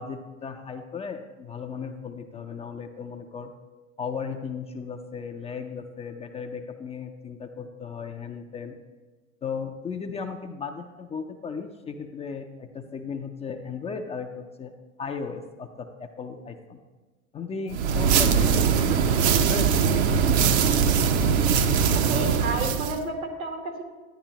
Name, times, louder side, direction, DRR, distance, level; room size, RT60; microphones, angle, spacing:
voice 1, 0.0-3.5 4.0-8.7 9.4-14.7 15.0-16.8 17.3-20.3, left 5 dB, 15° left, 5 dB, 0.5 m, -36 dB
sound 1, 17.7-23.0, right 6 dB, 55° right, 0.8 m, -21 dB
voice 2, 21.9-23.8, right 3 dB, 80° right, 3 dB, 1.8 m, -31 dB
10.0 x 10.0 x 3.0 m, 1.3 s
hypercardioid pair, 90°, 41 cm